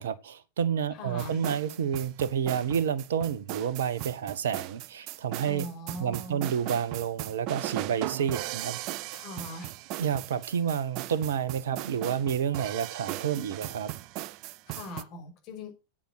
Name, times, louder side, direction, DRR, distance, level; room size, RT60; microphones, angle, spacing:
voice 1, 0.0-5.7 6.0-8.8 10.0-13.9, right 8 dB, 60° right, 1.3 m, -29 dB
voice 2, 0.9-1.4 5.4-6.5 9.1-9.7 14.7-15.7, left 1 dB, 40° left, 5.7 m, -40 dB
sound 1, 1.2-15.0, right 16 dB, 40° right, 0.5 m, -38 dB
9.1 x 8.9 x 6.5 m
figure-of-eight pair, 90°, 0 cm